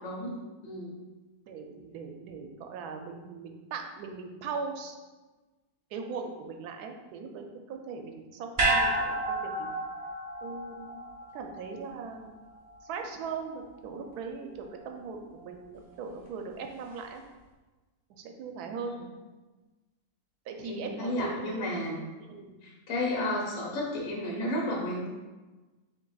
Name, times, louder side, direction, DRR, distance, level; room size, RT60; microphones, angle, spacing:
voice 1, 0.0-1.0 18.8-18.9 20.6-22.0 22.6-25.1, left 1 dB, 65° left, -3 dB, 1.3 m, -32 dB
voice 2, 1.5-5.0 5.9-9.7 10.4-11.0 11.3-12.3 12.8-17.2 18.1-19.0 20.5-21.7 22.2-22.5, right 5 dB, 85° right, 4 dB, 1.1 m, -39 dB
sound 1, 8.6-12.9 13.2-13.3, right 2 dB, 35° right, 0.9 m, -31 dB
7.7 x 2.7 x 2.3 m, 1.2 s
omnidirectional pair, 1.6 m